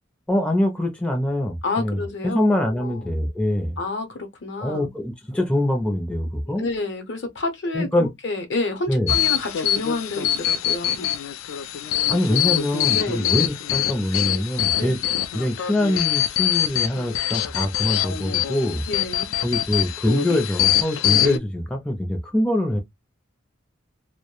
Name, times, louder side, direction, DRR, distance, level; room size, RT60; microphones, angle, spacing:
voice 1, 0.3-3.8 4.6-6.6 7.7-8.1 8.9-9.1 12.1-15.0 15.3-18.8 19.4-22.8, left 1 dB, 5° left, 0.4 m, -24 dB
voice 2, 1.6-2.4 2.8-3.1 3.8-4.9 6.4-11.1 12.9-13.3 14.8-15.0 18.9-19.3, left 3 dB, 60° left, 0.7 m, -29 dB
sound 1, 9.1-21.4, left 11 dB, 90° left, 0.3 m, -24 dB
2.2 x 2.1 x 2.9 m
head